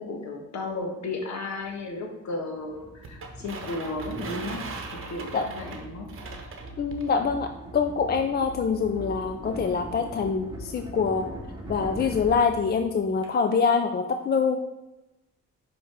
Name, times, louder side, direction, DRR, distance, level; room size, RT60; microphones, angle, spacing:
voice 1, 0.0-6.1, left 3 dB, 65° left, 1 dB, 1.5 m, -34 dB
sound 1, 1.6-1.7 2.7-13.3, right 1 dB, 15° right, 1.5 m, -40 dB
sound 2, 3.0-7.1, right 4 dB, 45° right, 1.0 m, -40 dB
voice 2, 6.8-11.3 11.7-14.6, left 5 dB, 35° left, 6 dB, 0.5 m, -25 dB
5.4 x 5.4 x 3.6 m, 0.97 s
cardioid pair, 90°, 30 cm